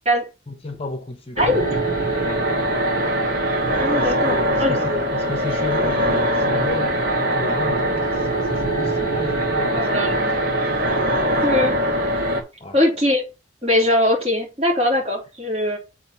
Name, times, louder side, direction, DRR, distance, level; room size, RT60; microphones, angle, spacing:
voice 1, 0.5-1.4 2.2-2.5 4.0-11.4 12.6-12.8, left 2 dB, 30° left, 0.8 m, -33 dB
sound 1, 1.4-12.4, right 1 dB, 75° right, 2.5 m, -22 dB
voice 2, 3.8-4.8 9.7-10.4 11.4-11.8 12.7-13.2 13.6-15.8, left 1 dB, 30° right, 3.6 m, -21 dB
7.4 x 4.1 x 5.9 m
head